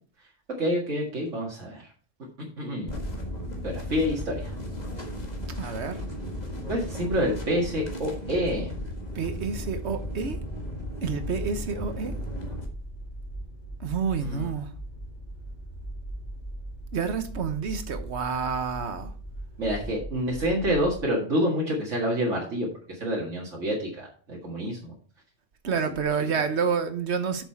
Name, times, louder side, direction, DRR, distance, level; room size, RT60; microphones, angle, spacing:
voice 1, 0.6-1.9 2.4-3.0 3.6-4.5 6.7-8.8 14.2-14.5 19.6-24.9, equal, 85° right, 2.3 m, -28 dB
sound 1, 2.9-12.6, left 1 dB, 35° left, 1.8 m, -35 dB
voice 2, 5.6-6.0 9.1-10.4 11.0-12.2 13.8-14.7 16.9-19.1 25.6-27.4, right 6 dB, 65° right, 1.3 m, -29 dB
sound 2, 9.8-10.3 11.3-21.0, right 1 dB, 75° left, 3.2 m, -39 dB
8.1 x 6.7 x 4.5 m
omnidirectional pair, 1.2 m